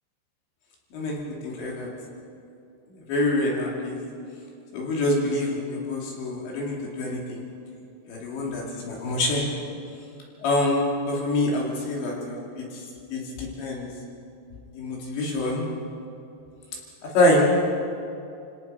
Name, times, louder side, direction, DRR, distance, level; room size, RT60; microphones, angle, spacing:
voice 1, 0.9-1.9 2.9-4.0 4.7-7.4 8.1-9.4 10.4-12.8 13.1-13.9 14.7-15.6 17.0-17.4, left 1 dB, 65° left, -2 dB, 4.9 m, -26 dB
30.0 x 18.5 x 5.6 m, 2.6 s
omnidirectional pair, 5.8 m